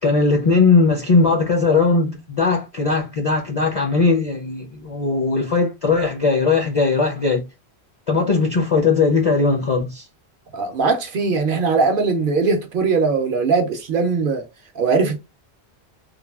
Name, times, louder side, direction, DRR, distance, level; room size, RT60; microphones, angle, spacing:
voice 1, 0.0-7.4 8.1-10.1, left 4 dB, 45° left, 0.5 m, -19 dB
voice 2, 10.5-14.4 14.8-15.2, right 4 dB, 60° right, 0.7 m, -20 dB
3.2 x 2.2 x 2.2 m
omnidirectional pair, 1.1 m